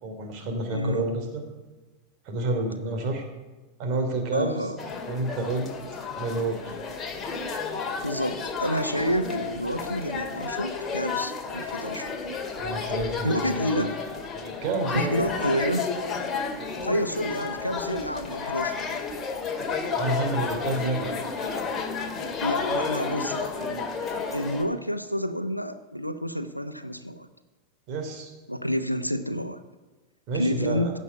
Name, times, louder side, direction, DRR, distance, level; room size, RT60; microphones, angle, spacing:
voice 1, 0.0-1.4 2.2-3.2 3.8-4.6 5.1-5.7 6.2-6.8 12.6-13.6 14.3-15.1 20.0-21.2 27.9-28.3 30.3-30.9, right 2 dB, 40° right, 3 dB, 3.1 m, -29 dB
voice 2, 0.7-1.1 4.3-4.8 8.0-12.1 13.2-14.0 14.9-15.9 16.8-18.7 22.4-23.5 24.3-27.3 28.5-29.6 30.3-30.9, equal, 90° left, 10 dB, 0.9 m, -29 dB
sound 1, 4.8-24.6, left 5 dB, 20° left, 2.1 m, -31 dB
15.5 x 5.5 x 9.7 m, 1.2 s
figure-of-eight pair, 90°, 0 cm